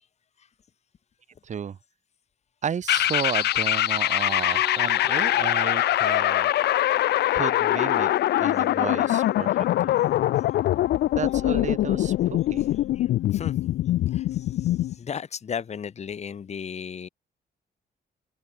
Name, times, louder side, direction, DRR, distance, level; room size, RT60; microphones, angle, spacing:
voice 1, 1.4-1.8 2.6-6.5 7.3-8.1 8.4-10.0 11.1-12.6, right 7 dB, 45° right, 4.8 m, -33 dB
sound 1, 2.9-14.9, left 14 dB, 75° left, 0.5 m, -23 dB
sound 2, 4.3-7.1, equal, 5° right, 4.6 m, -44 dB
voice 2, 12.9-13.6 14.1-17.1, left 7 dB, 40° left, 3.3 m, -36 dB
cardioid pair, 160°, 17 cm